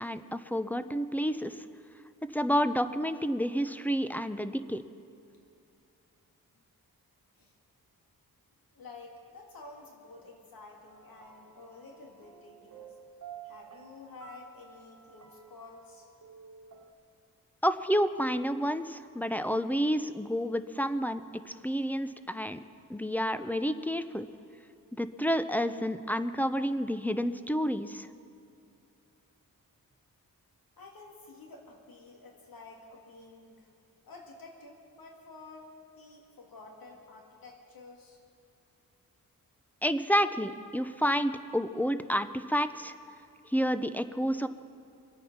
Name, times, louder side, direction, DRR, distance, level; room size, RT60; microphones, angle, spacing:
voice 1, 0.0-1.6 2.2-4.8 17.6-22.6 22.9-24.3 24.9-28.1 39.8-42.9 43.5-44.5, equal, 5° left, 11 dB, 0.6 m, -30 dB
voice 2, 8.7-13.0 13.4-16.1 30.8-33.7 34.0-35.7 36.0-38.2, left 3 dB, 75° left, 0 dB, 2.0 m, -50 dB
sound 1, 10.9-16.9, right 8 dB, 55° right, 1.3 m, -52 dB
24.0 x 9.0 x 5.9 m, 2.6 s
wide cardioid pair, 85°, 35 cm